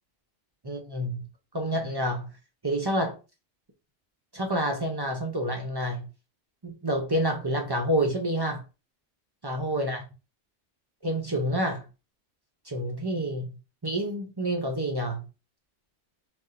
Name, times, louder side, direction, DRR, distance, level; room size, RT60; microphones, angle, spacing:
voice 1, 0.6-1.2 1.5-2.3 2.6-3.2 4.3-6.1 6.6-8.6 9.4-10.0 11.0-11.9 12.7-13.6 13.8-15.3, right 1 dB, 40° right, 0.3 m, -28 dB
3.8 x 2.6 x 2.4 m
omnidirectional pair, 1.2 m